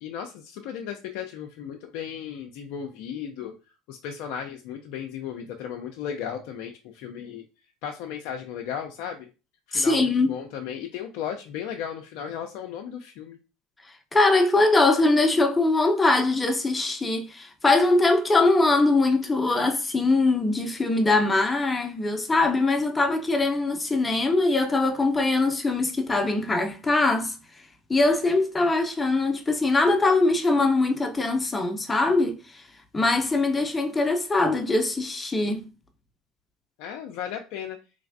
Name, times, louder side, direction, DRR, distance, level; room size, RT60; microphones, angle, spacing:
voice 1, 0.0-3.5 3.9-7.4 7.8-9.3 9.7-13.4 36.8-37.8, left 8 dB, 65° left, 0.4 m, -35 dB
voice 2, 9.7-10.3 14.1-27.3 27.9-32.4 32.9-35.7, left 2 dB, 20° left, 0.6 m, -22 dB
3.2 x 3.2 x 2.6 m
hypercardioid pair, 85°, 0 cm